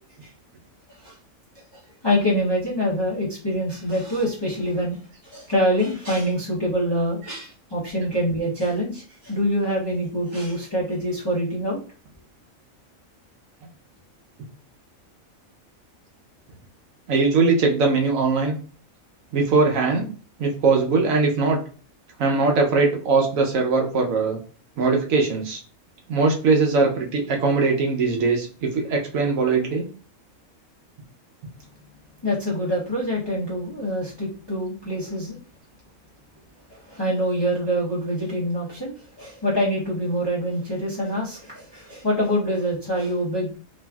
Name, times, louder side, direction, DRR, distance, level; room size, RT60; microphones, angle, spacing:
voice 1, 1.7-5.0 5.2-11.8 32.2-35.4 36.7-43.6, equal, 30° left, -6 dB, 0.5 m, -25 dB
voice 2, 17.1-18.6 19.3-20.1 20.4-21.6 22.2-24.4 24.8-25.6 26.1-29.8, right 4 dB, 75° right, 1 dB, 1.1 m, -21 dB
3.1 x 2.5 x 2.2 m, 0.39 s
omnidirectional pair, 1.4 m